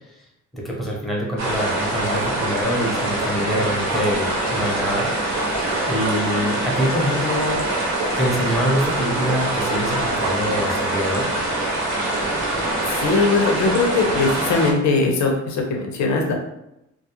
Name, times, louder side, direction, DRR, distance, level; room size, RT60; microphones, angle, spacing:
voice 1, 0.5-5.1 5.9-7.6 8.2-11.3, equal, ahead, -3 dB, 0.7 m, -25 dB
sound 1, 1.4-14.7, right 2 dB, 65° right, 0.7 m, -24 dB
voice 2, 13.0-16.3, left 3 dB, 70° left, 1 dB, 0.7 m, -20 dB
2.3 x 2.0 x 2.9 m, 0.85 s
cardioid pair, 90°, 30 cm